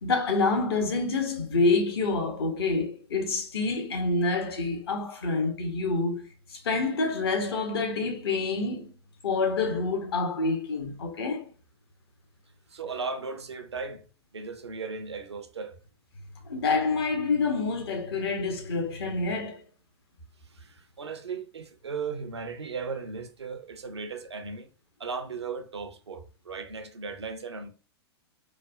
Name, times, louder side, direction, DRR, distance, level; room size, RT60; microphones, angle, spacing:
voice 1, 0.0-6.2 6.5-8.9 9.2-11.5 16.4-19.6, left 3 dB, 65° left, 0.8 m, -27 dB
voice 2, 12.7-14.0 14.3-15.8 20.5-24.7 25.0-27.7, right 5 dB, 85° right, 0.5 m, -36 dB
3.3 x 2.1 x 2.2 m
figure-of-eight pair, 105°, 14 cm